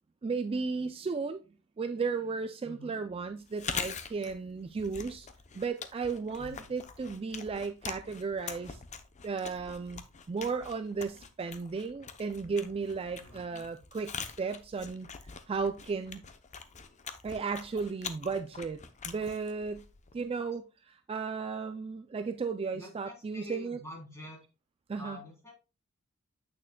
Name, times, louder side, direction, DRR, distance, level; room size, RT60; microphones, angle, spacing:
voice 1, 0.2-1.4 1.8-5.3 5.5-8.8 9.2-10.0 10.3-15.1 15.5-16.2 17.2-19.8 20.1-23.8 24.9-25.2, right 4 dB, 25° right, 0.3 m, -35 dB
voice 2, 2.6-3.0 6.4-6.8 13.1-13.8 20.1-20.3 22.7-24.4 25.0-25.5, left 1 dB, 15° left, 3.4 m, -48 dB
Chewing mastication, 3.4-20.3, left 6 dB, 35° left, 0.7 m, -44 dB
8.5 x 6.6 x 2.2 m
head